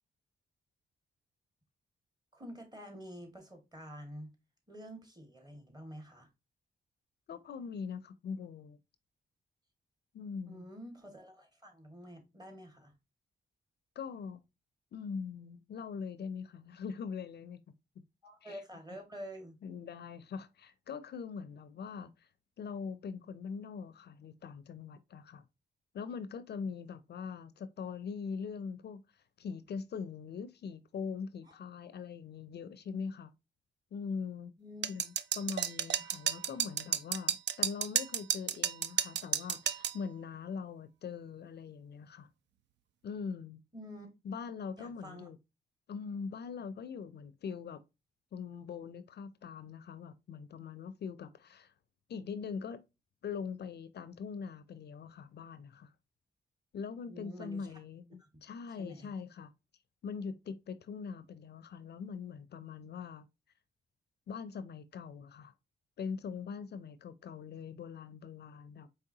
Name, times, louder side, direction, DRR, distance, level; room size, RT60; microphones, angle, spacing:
voice 1, 2.3-4.3 4.7-6.3 10.4-12.9 18.2-19.6 31.5-31.6 34.6-34.9 43.7-44.1 44.8-45.3 57.1-57.7 58.2-58.3 58.8-59.1, equal, 20° right, 1.8 m, -48 dB
voice 2, 7.3-8.8 10.1-10.7 14.0-14.4 14.9-17.6 18.4-18.6 19.6-22.3 22.6-25.4 25.9-33.3 33.9-34.5 34.9-42.3 43.0-43.6 44.2-45.4 45.9-47.8 48.3-51.7 52.1-52.8 53.2-55.9 56.7-59.5 60.0-63.3 64.3-65.5 66.0-68.9, left 6 dB, 60° left, 0.4 m, -42 dB
sound 1, 34.8-40.0, right 9 dB, 70° right, 0.4 m, -32 dB
4.6 x 3.3 x 2.7 m
cardioid pair, 60°, 19 cm